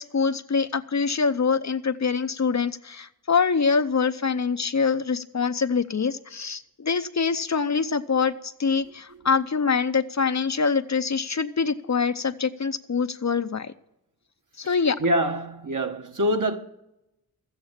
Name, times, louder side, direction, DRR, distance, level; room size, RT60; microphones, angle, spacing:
voice 1, 0.0-13.7 14.6-15.0, left 5 dB, 45° left, 0.7 m, -24 dB
voice 2, 15.0-16.6, equal, 50° right, 1.3 m, -24 dB
13.5 x 8.7 x 7.3 m
cardioid pair, 45°, 38 cm